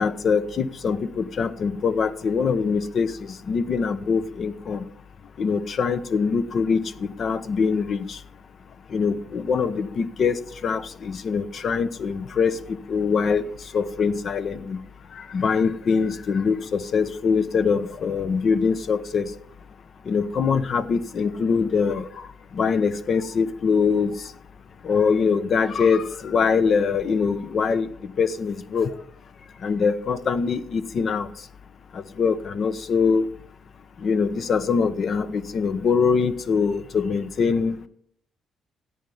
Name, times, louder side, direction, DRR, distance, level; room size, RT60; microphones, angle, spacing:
voice 1, 0.0-4.8 5.4-8.2 8.9-12.6 12.9-13.5 13.7-14.8 15.1-19.3 20.1-22.2 22.5-24.1 24.8-28.9 29.6-31.3 31.9-33.2 34.0-37.9, left 5 dB, 55° left, 12 dB, 0.9 m, -23 dB
14.0 x 9.4 x 5.6 m, 0.67 s
cardioid pair, 90°, 0 cm